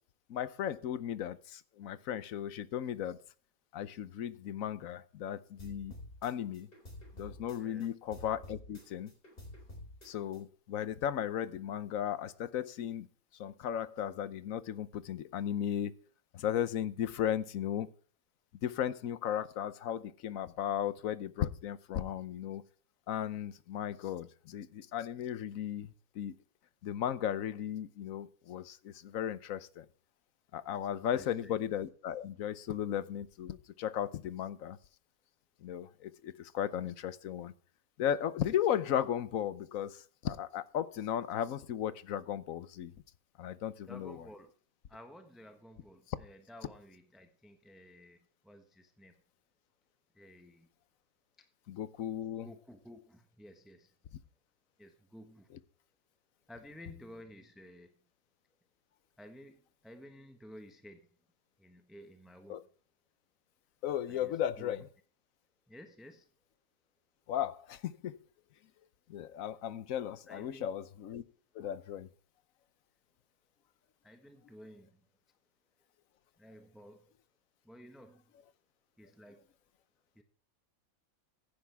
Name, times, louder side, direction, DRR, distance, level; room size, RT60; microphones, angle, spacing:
voice 1, 0.3-3.2 3.7-5.9 6.2-6.7 7.2-9.1 10.0-13.1 13.3-15.9 16.3-17.9 18.6-22.6 23.1-26.3 26.8-29.9 30.5-34.8 35.6-37.5 38.0-42.9 43.4-44.3 46.1-46.2 51.7-52.5 62.5-62.6 63.8-64.9 67.3-68.2 69.1-71.2 71.5-72.1, left 10 dB, 70° left, 16 dB, 1.2 m, -36 dB
sound 1, 5.6-7.9 8.1-10.4, left 1 dB, 40° left, 4.2 m, -49 dB
voice 2, 31.1-31.6 43.9-44.5 44.9-48.2 48.4-49.1 50.1-50.7 52.4-53.9 54.8-55.5 56.5-57.9 59.2-61.1 61.6-62.6 64.1-64.8 65.7-66.3 70.3-70.7 74.0-75.0 76.4-77.1 77.6-78.2 79.0-79.4 80.1-80.2, equal, ahead, 6 dB, 1.1 m, -53 dB
15.5 x 10.0 x 3.4 m, 0.42 s
omnidirectional pair, 1.5 m